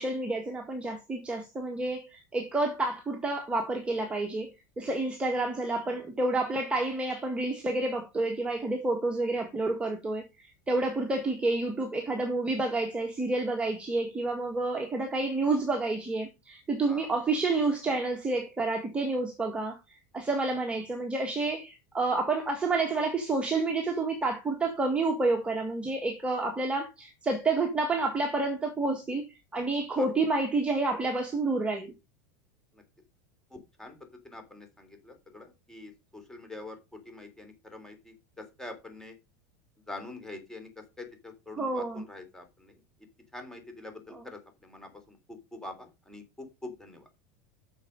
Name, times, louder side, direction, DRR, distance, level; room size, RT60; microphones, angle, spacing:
voice 1, 0.0-4.5 4.8-19.8 20.1-29.2 29.5-31.9 41.6-42.0 44.1-44.2, right 2 dB, 10° right, 1.9 m, -29 dB
voice 2, 33.5-33.9 34.2-39.1 39.9-42.7 43.3-47.0, left 2 dB, 5° left, 3.5 m, -45 dB
8.8 x 6.8 x 5.4 m
supercardioid pair, 125°, 9 cm